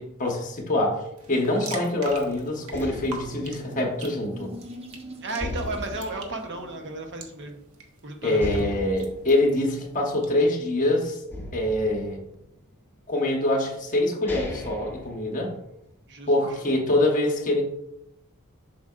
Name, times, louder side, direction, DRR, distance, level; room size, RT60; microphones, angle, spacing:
voice 1, 0.0-4.5 8.2-11.2 11.5-12.2 13.1-15.5 16.3-17.6, left 1 dB, 35° left, 1 dB, 1.2 m, -25 dB
sound 1, 1.2-10.3, right 4 dB, 80° right, 1.2 m, -45 dB
sound 2, 2.1-4.9 5.4-7.3 7.7-7.8 8.4-10.8 11.3-12.9 13.6-13.7 14.1-15.9, left 1 dB, 10° left, 1.1 m, -38 dB
sound 3, 2.3-7.5, equal, 25° right, 0.8 m, -45 dB
voice 2, 5.2-7.6 8.0-8.7 16.1-16.3, right 2 dB, 55° right, 4 dB, 1.0 m, -34 dB
7.4 x 6.1 x 2.5 m, 0.84 s
head